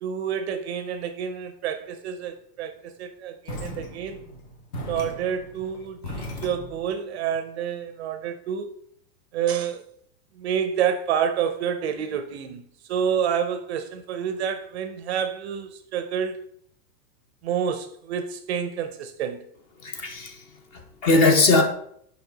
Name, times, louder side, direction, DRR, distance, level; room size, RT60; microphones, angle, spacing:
voice 1, 0.0-4.2 4.8-8.7 9.3-9.8 10.4-12.6 12.9-16.4 17.4-19.4, right 8 dB, 45° right, 0.5 m, -28 dB
sound 1, 3.5-7.0, left 1 dB, 65° left, 1.6 m, -38 dB
voice 2, 19.8-20.4 20.7-21.6, left 2 dB, 30° left, 0.7 m, -20 dB
5.4 x 4.5 x 3.8 m
supercardioid pair, 150°, 49 cm